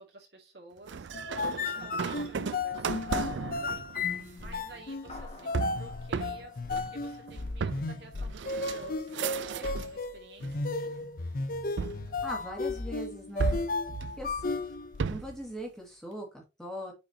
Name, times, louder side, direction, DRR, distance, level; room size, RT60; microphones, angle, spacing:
voice 1, 0.0-11.0, right 2 dB, 65° right, 1 dB, 2.3 m, -52 dB
sound 1, 0.9-10.0 10.4-11.1 11.8-12.9 13.4-15.5, right 5 dB, 80° right, 0.4 m, -35 dB
sound 2, 1.1-15.1, left 3 dB, 50° left, 0.6 m, -34 dB
sound 3, 5.1-7.8, left 2 dB, 35° left, 1.7 m, -52 dB
voice 2, 12.2-13.6 14.2-14.6 15.1-16.9, equal, 5° left, -1 dB, 2.2 m, -40 dB
6.7 x 5.0 x 2.8 m, 0.27 s
head